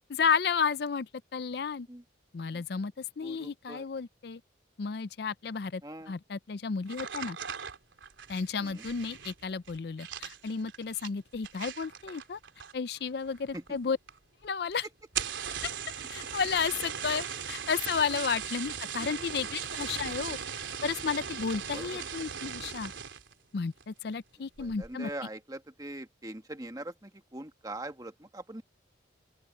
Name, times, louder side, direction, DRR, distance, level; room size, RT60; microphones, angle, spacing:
voice 1, 0.1-1.9 2.3-4.4 4.8-5.8 6.1-7.4 8.3-12.4 12.7-14.0 14.4-14.9 15.6-15.7 16.1-22.9 23.5-25.1, left 5 dB, 55° left, 0.4 m, -32 dB
voice 2, 3.2-3.8 5.8-6.1 8.6-8.9 13.5-13.6 18.1-18.2 19.0-19.5 20.0-20.2 21.7-22.0 24.6-28.6, right 1 dB, 20° right, 1.4 m, -43 dB
sound 1, 6.9-13.0 13.3-13.8 14.1-14.2 14.4-14.5 15.0-23.3 23.8-24.1 24.6-24.9, right 7 dB, 85° right, 3.5 m, -39 dB
open air
head